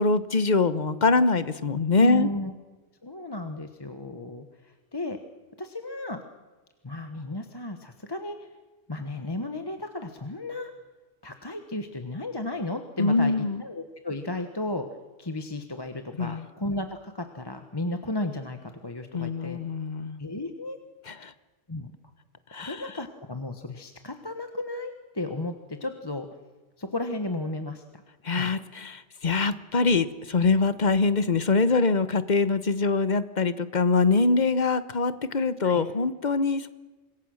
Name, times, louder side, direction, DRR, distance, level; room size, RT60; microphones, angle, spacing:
voice 1, 0.0-2.3 13.0-13.6 16.2-16.5 19.1-20.2 21.1-21.3 22.5-22.8 28.2-36.7, left 3 dB, 40° left, 13 dB, 1.0 m, -24 dB
voice 2, 2.0-2.5 3.0-5.2 5.6-6.2 6.8-8.5 8.9-10.7 11.2-14.9 15.2-19.6 20.2-20.8 21.7-21.9 22.5-26.3 26.8-28.5 35.6-35.8, left 2 dB, 20° left, 6 dB, 1.1 m, -34 dB
26.0 x 21.5 x 6.4 m, 1.2 s
omnidirectional pair, 1.2 m